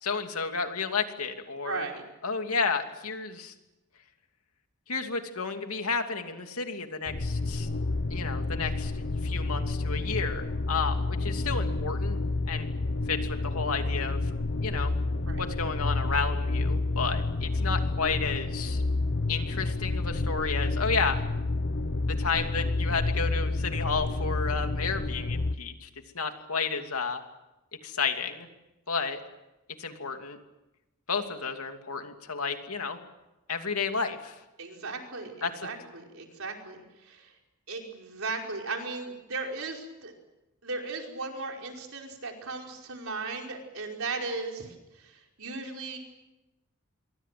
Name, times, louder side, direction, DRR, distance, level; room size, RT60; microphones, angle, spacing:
voice 1, 0.0-1.8 2.2-3.5 4.9-7.7 8.1-12.2 12.5-12.7 13.1-14.3 14.6-14.9 15.4-18.8 19.3-21.2 22.2-25.9 26.1-27.3 27.8-28.5 28.9-29.2 29.8-30.4 31.1-33.0 33.5-34.4 35.4-35.5, left 5 dB, 80° left, 5 dB, 2.8 m, -32 dB
voice 2, 1.6-2.0 10.7-10.8 15.3-15.4 34.6-37.3 37.7-40.1 40.6-46.0, right 3 dB, 65° right, 1 dB, 5.2 m, -37 dB
sound 1, 7.1-25.6, left 2 dB, 55° left, 1.0 m, -29 dB
27.0 x 23.5 x 7.7 m, 1.0 s
head